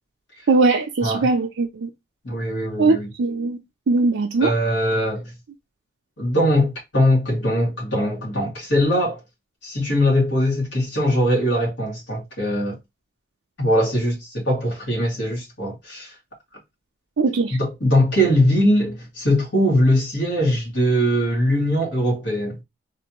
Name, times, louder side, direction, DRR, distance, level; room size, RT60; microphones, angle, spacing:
voice 1, 0.5-1.9 2.8-3.6 3.9-4.5 17.2-17.6, right 3 dB, 80° right, 0.5 m, -20 dB
voice 2, 2.2-3.1 4.4-5.2 6.2-9.2 9.6-12.8 13.6-16.1 17.6-22.6, equal, 65° left, 2.0 m, -21 dB
3.9 x 2.6 x 2.9 m
head